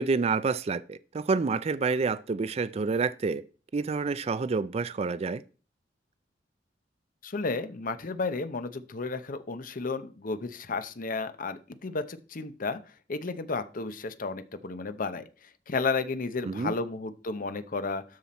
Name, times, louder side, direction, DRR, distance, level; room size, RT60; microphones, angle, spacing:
voice 1, 0.0-3.4 3.7-5.4 16.5-16.7, right 4 dB, 35° right, 0.4 m, -28 dB
voice 2, 7.2-12.8 13.1-15.2 15.7-18.0, left 4 dB, 50° left, 0.7 m, -32 dB
12.5 x 5.8 x 4.2 m
head